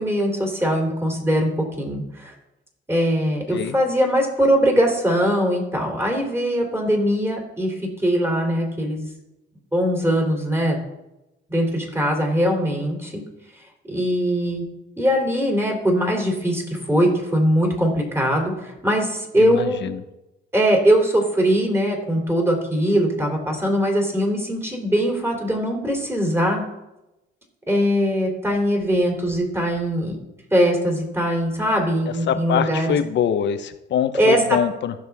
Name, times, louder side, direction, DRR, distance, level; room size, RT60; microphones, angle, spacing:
voice 1, 0.0-1.5 1.8-2.3 2.9-7.7 8.0-9.1 9.7-10.8 11.5-13.2 13.9-14.6 15.0-19.9 20.5-26.6 27.7-30.2 30.5-33.0 34.1-34.4, equal, 10° right, 1 dB, 3.2 m, -21 dB
voice 2, 19.4-20.0 32.1-34.9, left 9 dB, 65° left, 10 dB, 0.9 m, -24 dB
15.5 x 6.5 x 3.6 m, 0.94 s
cardioid pair, 90°, 20 cm